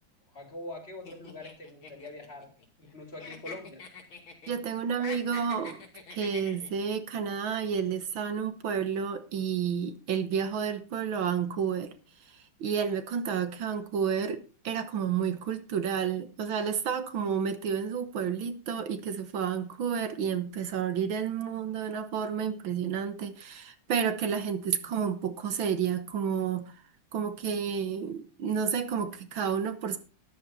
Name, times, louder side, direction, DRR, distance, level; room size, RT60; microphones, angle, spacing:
voice 1, 0.3-2.5 2.8-3.8, left 2 dB, 30° left, 2.4 m, -43 dB
sound 1, 1.0-2.9 3.2-4.6 4.9-6.9, left 4 dB, 70° left, 3.3 m, -44 dB
voice 2, 4.5-5.8 6.1-11.9 12.3-26.7 27.1-30.0, right 7 dB, 70° right, 1.8 m, -30 dB
13.0 x 11.0 x 4.1 m
omnidirectional pair, 2.3 m